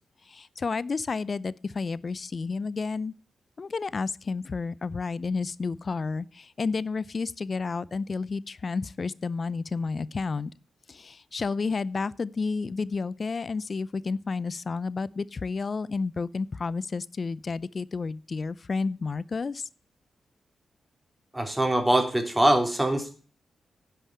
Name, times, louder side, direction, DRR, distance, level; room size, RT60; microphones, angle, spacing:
voice 1, 0.3-3.1 3.6-10.5 10.9-19.6, left 4 dB, 50° left, 0.5 m, -31 dB
voice 2, 21.3-23.1, right 1 dB, 15° right, 3.3 m, -23 dB
10.5 x 5.5 x 8.4 m
supercardioid pair, 45°, 0 cm